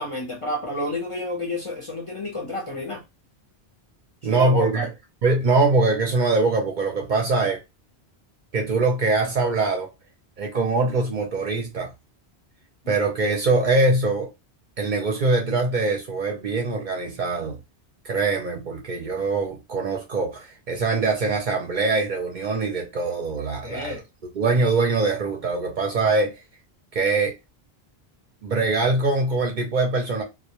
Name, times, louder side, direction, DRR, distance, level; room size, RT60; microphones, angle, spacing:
voice 1, 0.0-3.0 4.2-4.9 23.6-24.0, left 1 dB, 40° left, 0.5 m, -30 dB
voice 2, 4.2-4.9 5.2-7.6 8.5-9.9 10.4-11.9 12.9-14.3 14.8-17.6 18.0-24.0 24.3-26.3 26.9-27.3 28.4-30.2, right 3 dB, 55° right, 0.6 m, -23 dB
2.1 x 2.1 x 2.8 m
omnidirectional pair, 1.1 m